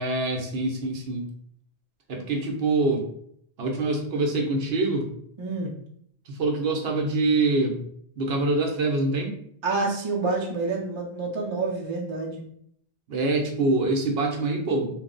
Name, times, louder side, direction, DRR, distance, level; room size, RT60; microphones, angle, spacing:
voice 1, 0.0-1.3 2.1-3.1 3.6-5.1 6.3-7.8 8.2-9.4 13.1-14.9, right 2 dB, 70° right, 1 dB, 0.9 m, -25 dB
voice 2, 5.4-5.7 9.6-12.4, right 3 dB, 35° right, -1 dB, 0.6 m, -28 dB
3.1 x 2.0 x 3.7 m, 0.68 s
omnidirectional pair, 1.1 m